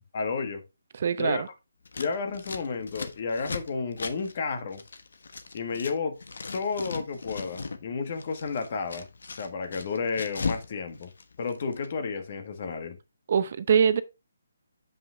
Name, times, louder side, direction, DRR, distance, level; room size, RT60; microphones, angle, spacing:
voice 1, 0.1-0.6 1.2-1.4 2.0-4.8 5.5-6.2 6.5-9.1 9.4-11.1 11.4-13.0, left 5 dB, 45° left, 1.5 m, -31 dB
voice 2, 0.9-1.5 13.3-14.0, right 7 dB, 50° right, 0.7 m, -23 dB
Scissors, 1.8-5.9 6.2-7.8 8.1-10.7 10.9-11.9, left 4 dB, 70° left, 1.2 m, -37 dB
7.9 x 5.5 x 3.4 m
hypercardioid pair, 155°, 0 cm